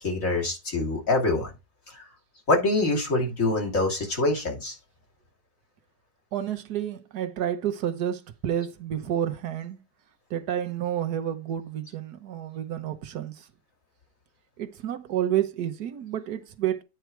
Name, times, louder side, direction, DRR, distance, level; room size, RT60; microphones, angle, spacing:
voice 1, 0.0-1.5 2.5-4.8, left 2 dB, 50° left, 2.9 m, -25 dB
voice 2, 6.3-9.8 10.3-13.3 14.6-16.8, right 10 dB, 70° right, 1.5 m, -30 dB
9.4 x 4.7 x 4.6 m
omnidirectional pair, 1.8 m